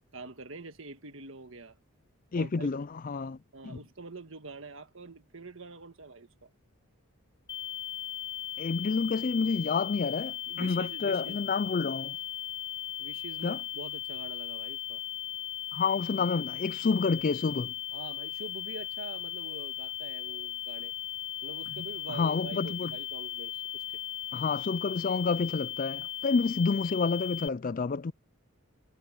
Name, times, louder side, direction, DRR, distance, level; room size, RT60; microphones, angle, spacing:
voice 1, 0.1-1.8 2.3-2.7 3.5-6.5 10.5-11.4 13.0-15.0 17.9-20.9 21.4-24.0, right 3 dB, 65° right, 1.7 m, -45 dB
voice 2, 2.3-3.4 3.6-3.8 8.6-12.2 13.4-13.6 15.7-17.7 21.8-22.9 24.3-28.1, left 4 dB, 40° left, 0.4 m, -29 dB
sound 1, 7.5-27.5, left 13 dB, 20° left, 1.2 m, -37 dB
head